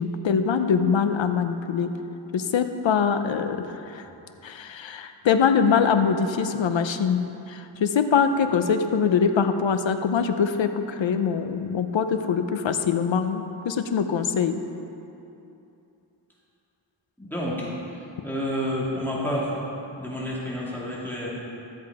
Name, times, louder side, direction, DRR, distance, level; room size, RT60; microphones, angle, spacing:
voice 1, 0.0-1.9 2.3-4.0 4.4-14.6, left 6 dB, 80° left, 8 dB, 0.8 m, -23 dB
voice 2, 17.2-17.7 18.2-19.5 20.0-21.3, equal, 5° left, -7 dB, 2.5 m, -29 dB
13.5 x 7.7 x 4.9 m, 2.8 s
wide cardioid pair, 105°, 45 cm